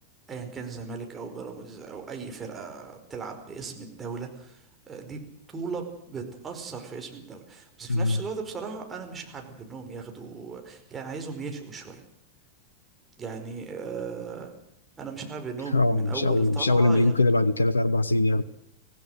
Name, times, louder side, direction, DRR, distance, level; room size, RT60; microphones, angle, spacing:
voice 1, 0.3-4.6 4.9-5.2 5.5-12.0 13.2-14.5 15.0-17.1, right 5 dB, 20° right, 3 dB, 5.0 m, -37 dB
voice 2, 7.9-8.2 15.7-18.4, left 2 dB, 80° left, 18 dB, 1.0 m, -22 dB
25.0 x 17.0 x 6.7 m, 0.77 s
figure-of-eight pair, 90°, 0 cm